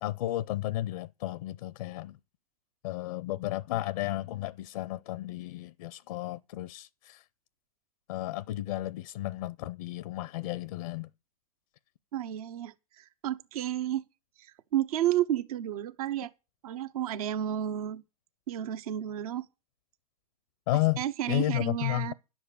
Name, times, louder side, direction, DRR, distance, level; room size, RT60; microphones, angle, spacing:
voice 1, 0.0-2.2 2.8-7.2 8.1-11.1 20.7-21.0 21.3-22.1, left 15 dB, 65° left, 0.5 m, -32 dB
voice 2, 12.1-14.0 14.4-16.3 16.6-18.0 18.5-19.5 21.0-22.1, right 11 dB, 70° right, 0.9 m, -31 dB
11.0 x 7.1 x 8.3 m
hypercardioid pair, 105°, 20 cm